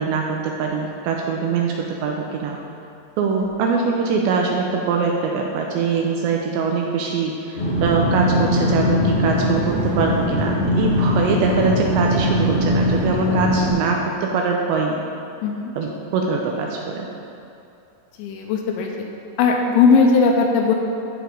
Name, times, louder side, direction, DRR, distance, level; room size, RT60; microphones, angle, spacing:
voice 1, 0.0-2.6 3.2-15.0 15.8-17.1, right 5 dB, 80° right, 0 dB, 2.7 m, -22 dB
sound 1, 7.5-13.7, left 1 dB, 25° left, 1.5 m, -21 dB
voice 2, 15.4-15.7 18.2-18.9 19.4-20.8, left 4 dB, 80° left, 1 dB, 3.1 m, -18 dB
14.5 x 5.1 x 5.1 m, 2.7 s
omnidirectional pair, 5.6 m